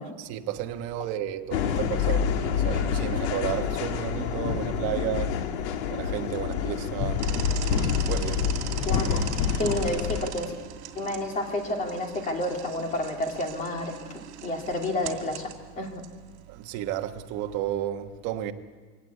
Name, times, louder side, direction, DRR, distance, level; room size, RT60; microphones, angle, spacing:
voice 1, 0.2-5.3 5.9-7.2 8.0-8.5 9.1-9.2 16.5-18.5, right 11 dB, 45° right, 1.3 m, -32 dB
sound 1, 1.5-10.3, left 7 dB, 70° left, 1.9 m, -27 dB
sound 2, 7.2-17.6, right 12 dB, 70° right, 2.6 m, -41 dB
voice 2, 9.6-10.5 10.9-16.0, left 1 dB, 20° left, 2.6 m, -30 dB
24.0 x 17.5 x 8.3 m
supercardioid pair, 165°, 34 cm